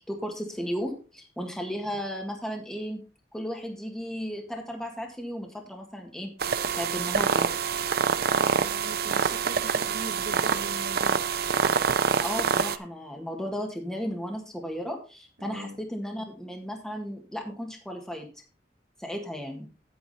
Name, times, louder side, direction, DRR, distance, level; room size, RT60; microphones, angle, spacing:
voice 1, 0.0-3.0 3.3-6.3 6.7-7.5 12.2-18.3 19.0-19.7, equal, 5° left, 1 dB, 1.8 m, -35 dB
sound 1, 6.4-12.8, right 6 dB, 60° right, 0.6 m, -26 dB
voice 2, 8.3-11.3 15.4-15.8, right 2 dB, 75° right, 6 dB, 1.0 m, -40 dB
8.8 x 8.6 x 4.2 m, 0.33 s
head